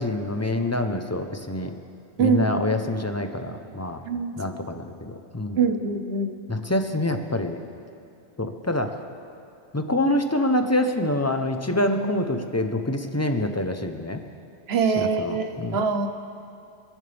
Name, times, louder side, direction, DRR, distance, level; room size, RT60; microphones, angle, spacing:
voice 1, 0.0-1.7 2.2-4.0 4.4-5.6 6.5-7.6 8.4-8.9 9.7-14.2 15.0-15.8, left 1 dB, 15° left, 6 dB, 0.7 m, -26 dB
voice 2, 4.0-4.4 5.6-6.4 14.7-16.1, right 5 dB, 60° right, 7 dB, 1.1 m, -24 dB
29.0 x 11.0 x 3.5 m, 2.6 s
omnidirectional pair, 1.2 m